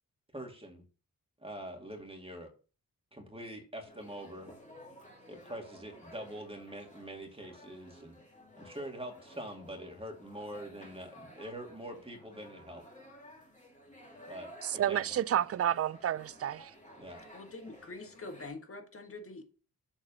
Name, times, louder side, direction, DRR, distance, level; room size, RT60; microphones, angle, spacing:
voice 1, 0.3-0.8 1.4-2.5 3.1-4.5 5.3-8.2 8.6-12.8 14.3-15.0 17.0-17.2, right 1 dB, 15° right, 2.3 m, -44 dB
sound 1, 3.8-18.5, equal, 20° left, 2.3 m, -54 dB
voice 2, 14.6-16.7, right 11 dB, 45° right, 0.4 m, -30 dB
voice 3, 17.3-19.4, left 3 dB, 40° left, 1.6 m, -45 dB
7.2 x 4.0 x 5.5 m
cardioid pair, 75°, 35 cm